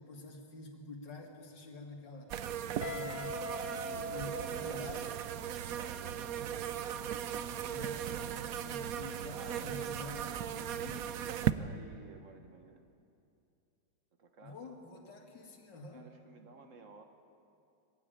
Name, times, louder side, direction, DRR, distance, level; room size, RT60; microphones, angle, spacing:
voice 1, 0.0-2.3 2.8-3.5 3.9-5.0 7.5-11.2 14.4-16.1, left 3 dB, 70° left, 1 dB, 2.9 m, -48 dB
sound 1, 2.3-11.5, right 10 dB, 65° right, 0.9 m, -37 dB
Guitar, 2.8-5.6, equal, 45° left, 1.6 m, -42 dB
voice 2, 3.8-5.2 5.6-7.1 9.3-9.8 10.2-10.4 11.2-12.9 14.2-14.6 15.9-17.0, right 3 dB, 45° right, 5 dB, 1.7 m, -53 dB
21.0 x 15.5 x 9.1 m, 2.6 s
omnidirectional pair, 2.0 m